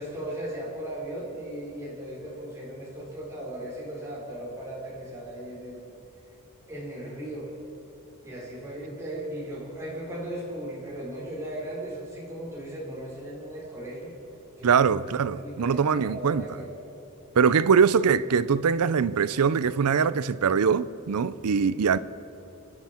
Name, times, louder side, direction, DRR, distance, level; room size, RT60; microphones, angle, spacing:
voice 1, 0.0-5.8 6.7-7.5 8.2-14.1 14.6-14.8 15.3-16.8 21.7-21.8, right 1 dB, 15° right, 4.5 m, -37 dB
voice 2, 14.6-16.4 17.4-22.0, right 6 dB, 85° right, 0.5 m, -22 dB
27.0 x 11.0 x 4.4 m
head